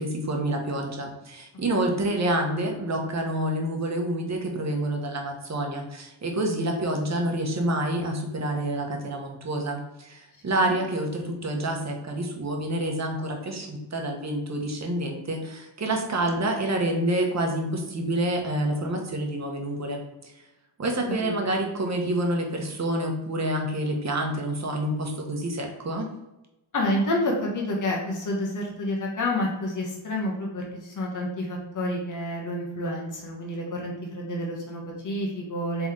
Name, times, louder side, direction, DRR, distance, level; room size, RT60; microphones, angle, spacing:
voice 1, 0.0-20.3 20.8-26.1, right 1 dB, 40° right, 2 dB, 1.1 m, -28 dB
voice 2, 26.7-35.9, left 1 dB, 45° left, -2 dB, 1.3 m, -29 dB
3.9 x 3.4 x 3.7 m, 0.95 s
cardioid pair, 85°, 43 cm